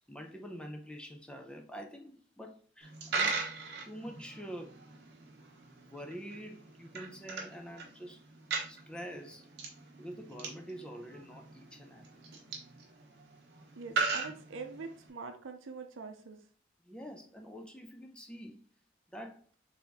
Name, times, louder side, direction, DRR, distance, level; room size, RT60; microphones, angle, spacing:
voice 1, 0.1-3.4 3.8-4.8 5.8-8.2 8.6-9.5 10.0-12.2 13.9-14.1 16.8-18.7 19.1-19.4, equal, 5° left, 0.5 m, -46 dB
Coin (dropping), 2.8-15.1, right 4 dB, 60° right, 1.0 m, -39 dB
voice 2, 13.8-16.4, right 4 dB, 85° right, 0.6 m, -44 dB
4.2 x 3.4 x 3.5 m
head